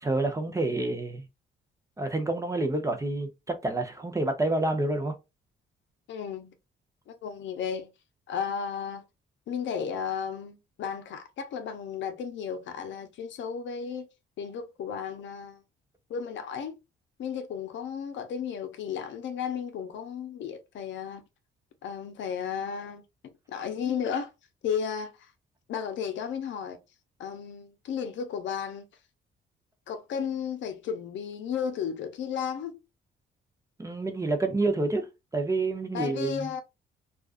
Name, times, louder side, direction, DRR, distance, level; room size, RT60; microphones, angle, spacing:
voice 1, 0.0-1.2 2.0-5.1 33.8-35.1 35.3-36.5, right 2 dB, 15° right, 0.6 m, -28 dB
voice 2, 6.1-6.5 7.1-7.9 8.3-9.0 9.5-14.1 14.4-15.6 16.1-16.8 17.2-21.2 21.8-23.0 23.5-24.3 24.6-25.3 25.7-26.8 27.2-28.9 29.9-32.8 35.9-36.6, left 7 dB, 70° left, 0.6 m, -34 dB
2.4 x 2.3 x 2.4 m
cardioid pair, 90°, 20 cm